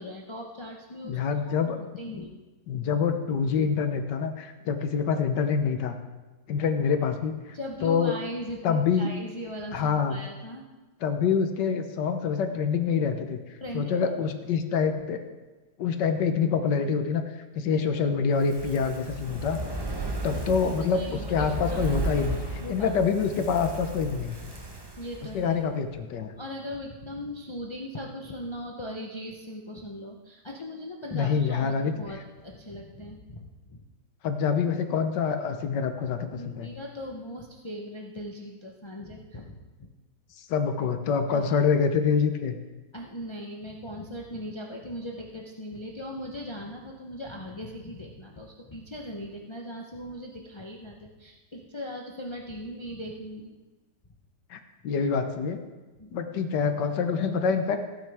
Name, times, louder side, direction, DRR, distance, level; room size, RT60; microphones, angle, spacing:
voice 1, 0.0-1.2 1.5-2.4 7.5-10.7 13.6-14.1 20.9-21.8 22.6-22.9 25.0-25.6 26.4-33.8 36.3-39.9 41.3-41.6 42.9-53.6 56.0-56.1, equal, 45° left, -1 dB, 0.3 m, -39 dB
voice 2, 1.0-1.8 2.1-2.3 2.7-6.0 6.5-7.6 7.8-8.1 8.6-9.1 9.7-10.2 11.0-13.4 13.7-15.2 15.8-17.2 17.5-19.6 20.2-24.4 25.3-26.3 31.1-31.9 34.2-36.7 40.4-42.6 54.5-55.6 56.1-57.8, left 6 dB, 70° left, 7 dB, 1.5 m, -26 dB
Fire, 18.3-25.7 26.0-26.1, right 2 dB, 40° right, 0.3 m, -35 dB
15.0 x 9.1 x 3.5 m, 1.2 s
omnidirectional pair, 2.0 m